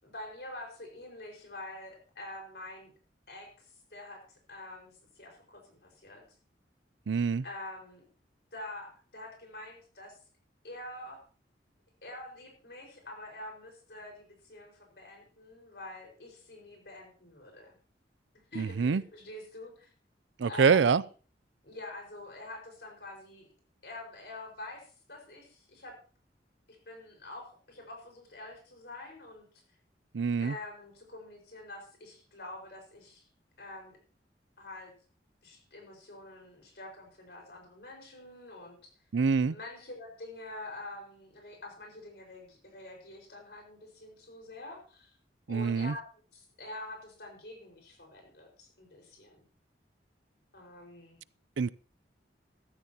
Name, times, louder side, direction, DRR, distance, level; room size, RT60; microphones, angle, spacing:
voice 1, 0.0-2.9 3.3-6.2 7.4-8.0 8.5-10.2 10.6-11.2 12.0-17.8 18.5-19.9 20.4-21.0 21.6-23.5 23.8-26.0 26.7-29.4 30.4-33.2 33.6-34.0 34.6-34.9 35.4-38.9 39.5-45.1 45.5-46.0 46.3-49.4 50.5-51.2, left 2 dB, 65° left, 1 dB, 5.1 m, -46 dB
voice 2, 7.1-7.4 18.6-19.0 20.4-21.0 30.1-30.5 39.1-39.6 45.5-45.9 51.6-51.7, right 5 dB, 90° right, 19 dB, 0.5 m, -25 dB
14.5 x 13.5 x 2.9 m, 0.38 s
head